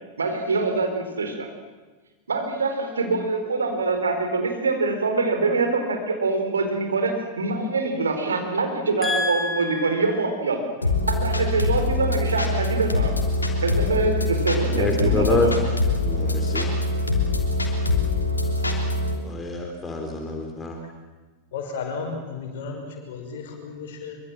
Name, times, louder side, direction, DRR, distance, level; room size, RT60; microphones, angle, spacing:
voice 1, 0.2-1.5 2.3-10.6 11.1-13.2 13.6-15.6, right 3 dB, 70° right, 5 dB, 4.3 m, -24 dB
voice 2, 9.0-9.9 14.8-15.5 16.0-16.7 19.2-20.8, left 2 dB, 15° left, 3 dB, 3.5 m, -27 dB
sound 1, 10.8-19.2, left 2 dB, 80° left, 3.2 m, -23 dB
voice 3, 21.5-24.2, left 4 dB, 55° left, 3 dB, 5.8 m, -34 dB
25.0 x 23.5 x 7.6 m, 1.3 s
figure-of-eight pair, 90°, 0 cm